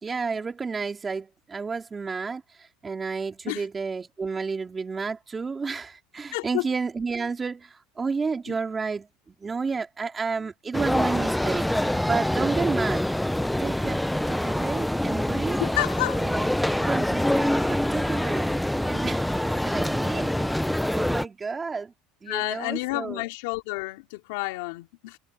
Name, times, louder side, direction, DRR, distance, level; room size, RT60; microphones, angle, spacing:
voice 1, 0.0-13.0 13.6-15.6 16.2-18.5 18.8-21.9 22.2-23.2, right 4 dB, 20° right, 3.7 m, -31 dB
voice 2, 6.3-6.7 8.5-8.6 15.6-16.3 22.3-25.2, left 24 dB, 80° left, 3.1 m, -30 dB
sound 1, 10.7-21.3, left 1 dB, 5° left, 0.6 m, -25 dB
supercardioid pair, 125°, 0 cm